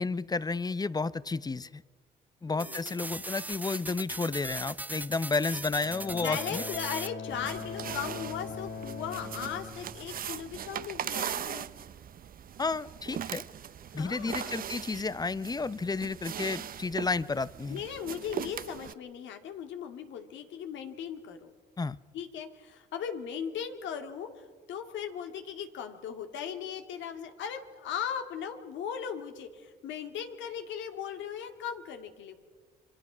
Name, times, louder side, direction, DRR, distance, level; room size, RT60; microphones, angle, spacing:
voice 1, 0.0-1.8 2.4-6.6 12.6-13.4 13.9-17.8 21.8-22.0, left 3 dB, 20° left, 18 dB, 0.7 m, -32 dB
voice 2, 2.5-3.3 6.1-11.7 13.9-14.7 17.7-21.5 22.1-32.4, left 8 dB, 75° left, 6 dB, 2.2 m, -38 dB
sound 1, 2.6-7.1, right 1 dB, 10° right, 0.8 m, -39 dB
Bowed string instrument, 5.8-10.8, left 4 dB, 55° left, 5.2 m, -41 dB
sound 2, 7.3-18.9, right 9 dB, 50° right, 0.7 m, -40 dB
27.0 x 23.0 x 6.2 m, 1.5 s
supercardioid pair, 80°, 19 cm